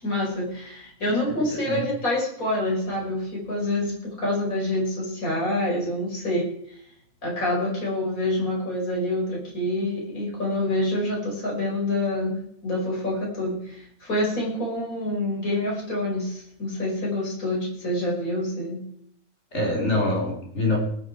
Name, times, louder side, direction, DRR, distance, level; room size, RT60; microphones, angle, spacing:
voice 1, 0.0-6.4 7.2-18.8, left 1 dB, 65° left, -4 dB, 6.0 m, -27 dB
voice 2, 1.3-1.8 19.5-20.8, left 2 dB, 45° left, -2 dB, 4.2 m, -25 dB
18.5 x 8.8 x 4.7 m, 0.67 s
omnidirectional pair, 1.6 m